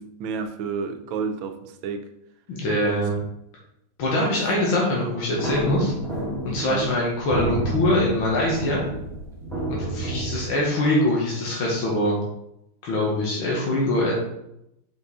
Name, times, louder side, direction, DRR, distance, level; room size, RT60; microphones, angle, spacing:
voice 1, 0.0-2.1 2.8-3.1 4.3-4.4 6.7-6.9 9.6-9.8, right 5 dB, 80° right, 7 dB, 1.5 m, -31 dB
voice 2, 2.5-3.2 4.0-5.9 6.4-8.8 9.7-12.2 12.8-14.2, left 1 dB, 85° left, -3 dB, 2.2 m, -23 dB
sound 1, 5.4-10.4, right 1 dB, ahead, 1.6 m, -30 dB
5.3 x 5.3 x 4.1 m, 0.81 s
omnidirectional pair, 2.2 m